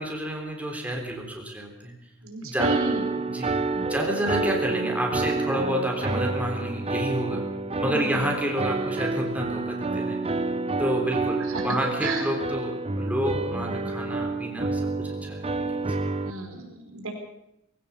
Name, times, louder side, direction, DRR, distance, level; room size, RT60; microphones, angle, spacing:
voice 1, 0.0-1.9 2.4-2.7 3.2-3.6 3.9-7.4 7.8-10.2 10.8-15.7, equal, 5° right, 0 dB, 3.6 m, -29 dB
voice 2, 2.2-3.3 3.7-4.0 6.1-6.2 7.8-8.3 11.5-11.6 12.0-12.3 13.5-13.7 16.2-17.1, right 3 dB, 80° right, 4 dB, 4.8 m, -34 dB
sound 1, 2.6-16.3, right 3 dB, 30° right, 1.0 m, -28 dB
22.5 x 16.0 x 7.0 m, 0.82 s
head